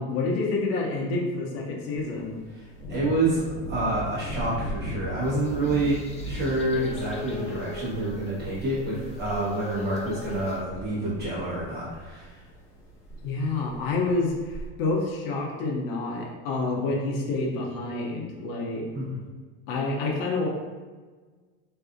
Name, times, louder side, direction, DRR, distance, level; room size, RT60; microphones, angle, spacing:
voice 1, 0.0-2.4 13.2-18.8 19.7-20.5, left 3 dB, 75° left, -1 dB, 0.6 m, -28 dB
Thunder, 1.9-14.7, equal, 60° left, 1.0 m, -39 dB
voice 2, 2.5-12.5 18.9-19.2, right 2 dB, 35° right, -8 dB, 1.1 m, -28 dB
sound 1, 5.2-10.6, left 3 dB, 25° left, 0.4 m, -40 dB
2.7 x 2.4 x 2.4 m, 1.4 s
supercardioid pair, 115°, 29 cm